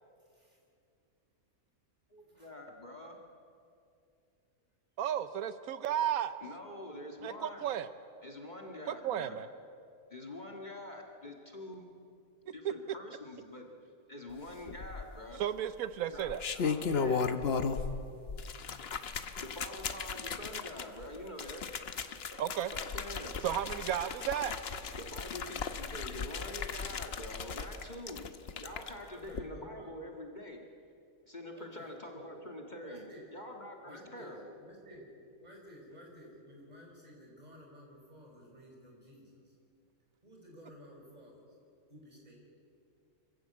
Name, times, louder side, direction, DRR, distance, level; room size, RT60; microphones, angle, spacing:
voice 1, 2.1-3.2 6.4-7.8 8.2-9.4 10.1-11.9 12.5-13.7 14.1-15.4 16.1-17.3 19.4-21.7 22.7-23.3 25.0-28.3 28.6-30.7 31.3-34.4, left 1 dB, 35° left, 2 dB, 1.9 m, -45 dB
voice 2, 5.0-6.3 7.2-7.9 8.8-9.5 12.6-12.7 15.4-16.4 22.3-22.7 23.4-24.6, right 10 dB, 85° right, 13 dB, 1.2 m, -33 dB
sound 1, 14.7-15.3 16.1-18.0 18.3-28.9 29.3-29.4, left 5 dB, 50° left, 1.1 m, -36 dB
voice 3, 28.8-30.0 31.6-32.3 32.8-33.3 33.8-34.3 34.6-35.1 35.4-39.5 40.2-41.5 41.9-42.4, equal, 30° right, -1 dB, 5.2 m, -53 dB
25.5 x 15.0 x 8.4 m, 2.5 s
omnidirectional pair, 1.4 m